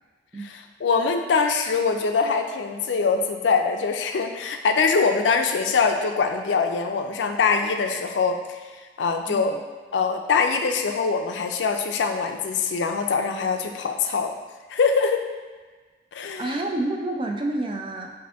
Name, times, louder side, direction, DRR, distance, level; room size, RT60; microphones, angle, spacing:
voice 1, 0.4-8.6 9.0-9.5 9.9-14.3 14.7-15.2 16.1-16.5, left 5 dB, 90° left, 5 dB, 0.4 m, -23 dB
voice 2, 9.3-9.6 16.4-18.1, right 2 dB, 30° right, 2 dB, 0.4 m, -28 dB
4.9 x 2.6 x 3.4 m, 1.4 s
head